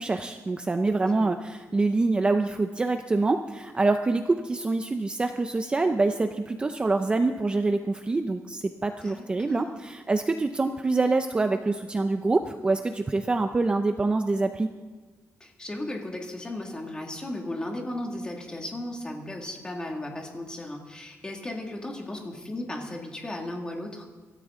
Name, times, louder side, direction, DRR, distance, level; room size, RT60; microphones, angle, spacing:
voice 1, 0.0-14.7, right 3 dB, 20° right, 7 dB, 0.5 m, -25 dB
voice 2, 1.0-1.3 9.0-9.8 15.4-24.0, left 1 dB, 15° left, 1 dB, 2.1 m, -36 dB
25.0 x 13.5 x 3.7 m, 1.3 s
wide cardioid pair, 175°, 6 cm